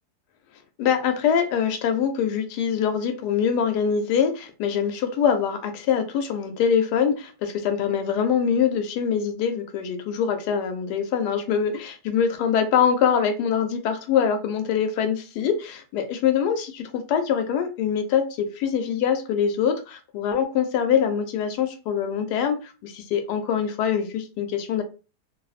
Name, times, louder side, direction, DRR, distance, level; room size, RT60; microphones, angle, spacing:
voice 1, 0.8-24.8, left 7 dB, 85° left, 6 dB, 1.2 m, -24 dB
2.9 x 2.0 x 2.3 m, 0.33 s
omnidirectional pair, 1.7 m